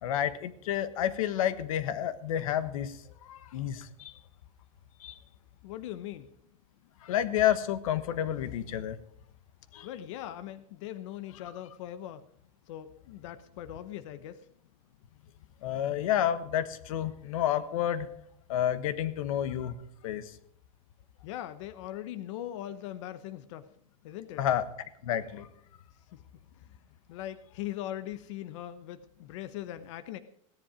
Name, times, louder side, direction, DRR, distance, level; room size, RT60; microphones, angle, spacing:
voice 1, 0.0-4.1 5.0-5.2 7.0-9.0 9.7-9.9 15.6-18.1 18.5-19.7 20.0-20.3 24.4-24.6 25.0-25.5, left 10 dB, 80° left, 13 dB, 1.3 m, -30 dB
voice 2, 5.6-6.3 9.8-12.3 12.7-14.5 21.2-23.7 24.0-24.4 26.1-26.2 26.7-26.8 27.1-30.2, left 12 dB, 60° left, 11 dB, 0.9 m, -40 dB
17.0 x 10.5 x 5.0 m, 0.69 s
supercardioid pair, 170°, 18 cm